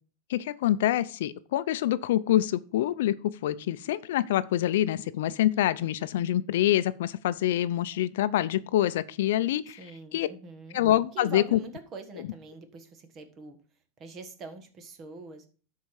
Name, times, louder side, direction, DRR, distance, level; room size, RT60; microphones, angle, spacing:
voice 1, 0.3-9.8 10.1-10.3 10.7-11.6, left 13 dB, 80° left, 16 dB, 0.5 m, -26 dB
voice 2, 9.8-10.8 11.1-13.6 14.0-15.5, right 4 dB, 30° right, 8 dB, 1.4 m, -44 dB
12.0 x 4.7 x 4.8 m, 0.39 s
supercardioid pair, 155°, 0 cm